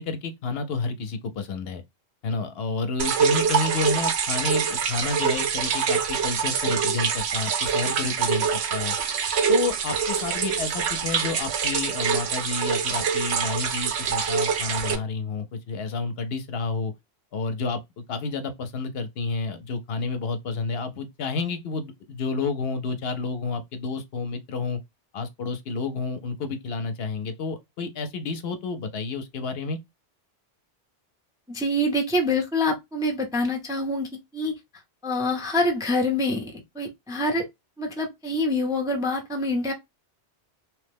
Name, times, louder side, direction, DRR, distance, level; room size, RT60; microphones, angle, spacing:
voice 1, 0.0-1.8 2.2-9.0 9.5-16.9 17.3-17.8 18.1-24.8 25.1-29.8, left 4 dB, 70° left, 0.8 m, -30 dB
sound 1, 3.0-15.0, right 6 dB, 75° right, 0.9 m, -25 dB
voice 2, 31.5-34.5 35.0-37.5 37.8-39.7, left 1 dB, 5° right, 0.4 m, -26 dB
3.0 x 2.1 x 3.3 m
omnidirectional pair, 1.1 m